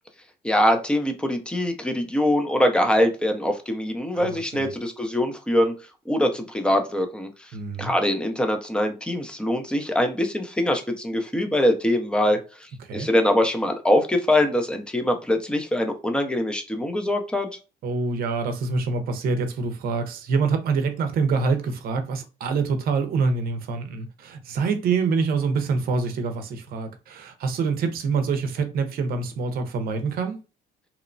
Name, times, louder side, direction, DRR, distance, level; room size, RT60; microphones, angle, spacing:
voice 1, 0.4-5.7 6.1-7.3 7.8-12.4 12.9-17.5, left 1 dB, 5° left, 0.6 m, -23 dB
voice 2, 4.2-4.7 7.5-7.9 12.8-13.1 17.8-30.4, right 4 dB, 60° right, 0.6 m, -26 dB
2.9 x 2.1 x 2.6 m
cardioid pair, 110°, 17 cm